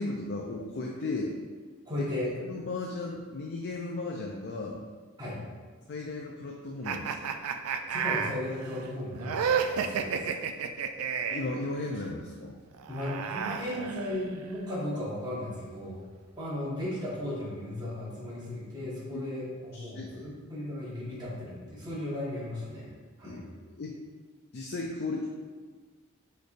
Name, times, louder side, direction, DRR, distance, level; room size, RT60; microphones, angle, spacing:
voice 1, 0.0-1.3 2.0-2.1 2.4-4.8 5.9-7.4 11.3-12.5 19.1-19.2 19.7-20.2 23.2-23.5 23.8-24.0 24.5-25.3, left 2 dB, 50° left, -1 dB, 0.4 m, -35 dB
voice 2, 1.8-2.3 5.2-5.4 7.9-10.3 12.9-16.0 16.4-22.9 23.2-23.4, left 1 dB, 20° right, -7 dB, 1.3 m, -36 dB
sound 1, 6.8-11.5 12.7-14.4, right 7 dB, 90° right, 0.3 m, -31 dB
6.3 x 3.3 x 2.5 m, 1.4 s
head